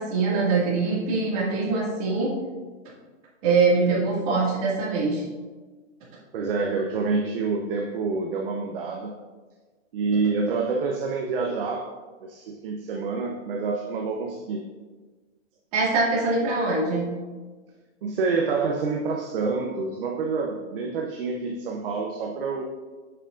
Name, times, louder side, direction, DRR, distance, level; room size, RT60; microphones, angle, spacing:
voice 1, 0.0-2.3 3.4-5.2 15.7-17.1, right 3 dB, 30° right, -5 dB, 2.1 m, -23 dB
voice 2, 6.3-9.1 9.9-11.9 12.2-14.7 18.0-22.6, right 4 dB, 50° right, 1 dB, 0.7 m, -27 dB
7.3 x 6.8 x 2.5 m, 1.3 s
hypercardioid pair, 165°, 36 cm